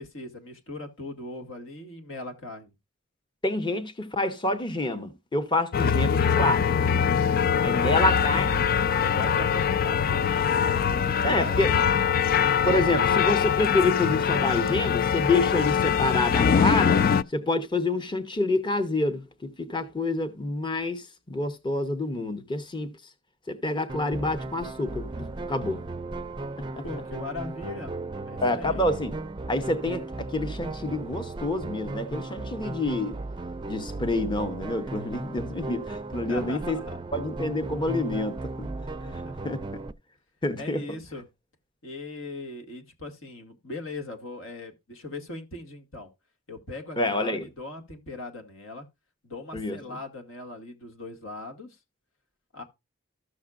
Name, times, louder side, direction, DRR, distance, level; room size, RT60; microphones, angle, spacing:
voice 1, 0.0-2.7 7.7-8.6 9.0-11.9 26.8-28.0 28.3-28.9 36.3-37.0 39.0-39.5 40.6-41.3 41.8-46.1 46.5-48.9 49.2-51.8 52.5-52.6, left 2 dB, 75° left, 2.0 m, -39 dB
voice 2, 3.4-6.7 7.6-8.6 11.2-11.7 12.6-17.0 17.3-22.9 23.5-25.8 26.8-26.9 28.4-29.2 29.5-33.1 33.7-36.8 37.1-38.7 39.4-39.8 40.4-40.8 47.0-47.5 49.5-49.8, left 2 dB, 25° left, 0.8 m, -27 dB
sound 1, 5.7-17.2, left 7 dB, 45° left, 0.4 m, -23 dB
sound 2, 23.9-39.9, right 2 dB, 25° right, 0.4 m, -36 dB
14.0 x 6.4 x 2.4 m
head